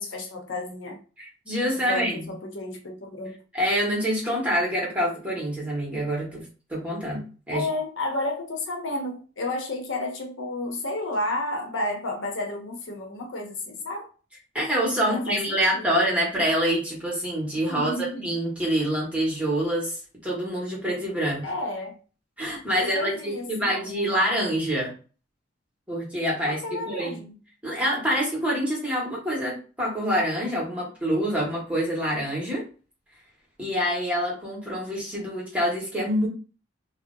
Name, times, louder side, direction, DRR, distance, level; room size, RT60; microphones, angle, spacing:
voice 1, 0.0-1.0 1.7-3.4 7.5-14.1 15.0-15.9 17.7-18.4 21.4-22.0 22.8-24.2 26.4-27.4, left 2 dB, 90° left, 0.8 m, -32 dB
voice 2, 1.2-2.3 3.5-6.4 6.7-7.7 14.5-20.0 20.2-21.5 22.4-24.9 25.9-27.2 27.6-32.6 33.6-36.3, equal, 5° right, 1.2 m, -26 dB
2.7 x 2.1 x 3.8 m
head